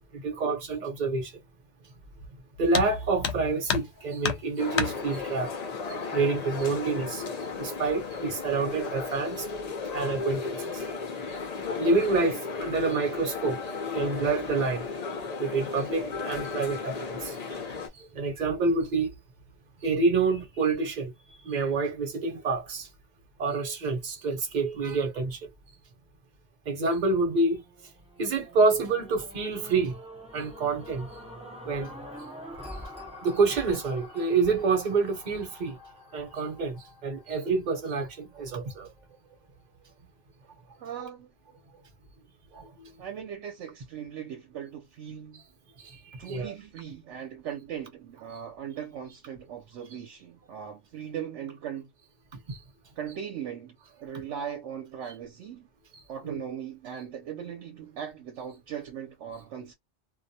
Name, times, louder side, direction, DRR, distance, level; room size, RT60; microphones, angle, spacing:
voice 1, 0.1-1.3 2.6-5.5 5.9-7.2 7.6-9.5 9.9-10.8 11.3-11.4 11.8-13.6 13.9-14.8 15.4-17.4 17.9-19.1 19.8-21.1 21.4-22.9 23.4-25.4 26.7-27.6 28.2-30.0 30.3-31.1 31.6-31.9 33.2-35.8 36.1-38.9 42.5-42.9 45.8-46.5 52.5-52.6 55.9-56.4, right 4 dB, 45° right, 0.8 m, -27 dB
sound 1, 2.7-3.0 3.2-4.0 4.2-5.0 6.1-6.2 6.7-6.8 7.6-7.9 8.3-8.7, left 7 dB, 70° left, 0.8 m, -29 dB
sound 2, 4.6-17.9, left 4 dB, 45° left, 0.6 m, -35 dB
sound 3, 27.5-37.8 38.4-38.5, left 1 dB, 5° right, 0.6 m, -45 dB
voice 2, 40.8-41.3 43.0-45.4 46.2-51.9 53.0-53.8 54.0-55.7 56.1-59.7, right 8 dB, 80° right, 0.9 m, -39 dB
2.3 x 2.1 x 2.7 m
omnidirectional pair, 1.2 m